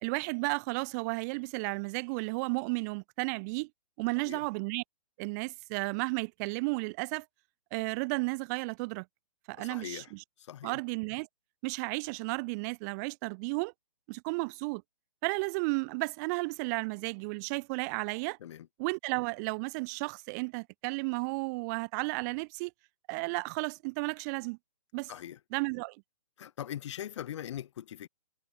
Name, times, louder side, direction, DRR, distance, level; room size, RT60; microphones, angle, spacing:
voice 1, 0.0-3.7 4.0-4.8 5.2-7.3 7.7-9.0 9.5-10.2 10.6-11.3 11.6-13.7 14.1-14.8 15.2-18.4 18.8-22.7 23.1-24.6 24.9-25.1 25.5-26.0, right 30 dB, 30° right, 0.9 m, -33 dB
voice 2, 9.6-10.1 10.4-10.8 18.4-18.7 25.1-25.4 26.4-28.1, left 11 dB, 50° left, 2.3 m, -41 dB
figure-of-eight pair, 130°, 19 cm